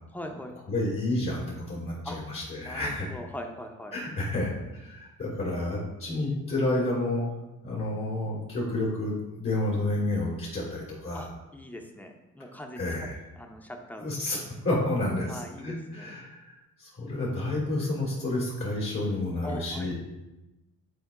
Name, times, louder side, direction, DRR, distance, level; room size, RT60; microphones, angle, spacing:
voice 1, 0.1-0.6 2.0-2.2 2.6-3.9 11.1-12.9 13.3-14.4 15.3-16.1 19.4-19.9, left 1 dB, 5° left, 3 dB, 0.8 m, -41 dB
voice 2, 0.7-3.1 3.9-7.2 7.6-11.3 12.8-13.2 14.0-14.4 14.6-19.9, left 2 dB, 45° left, -7 dB, 2.2 m, -30 dB
9.5 x 4.3 x 2.4 m, 1.0 s
cardioid pair, 90°, 30 cm